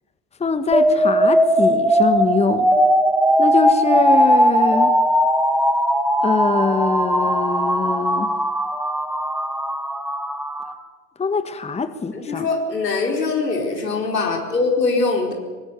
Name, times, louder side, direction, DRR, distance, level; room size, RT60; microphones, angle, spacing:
voice 1, 0.4-2.7 3.4-4.9 6.2-8.3 11.2-12.5, left 4 dB, 15° left, 11 dB, 1.4 m, -23 dB
sound 1, 0.7-10.7, equal, 5° right, 2.6 m, -18 dB
voice 2, 12.1-15.3, left 3 dB, 90° left, 1 dB, 4.7 m, -22 dB
23.5 x 21.0 x 7.0 m, 1.4 s
hypercardioid pair, 85°, 48 cm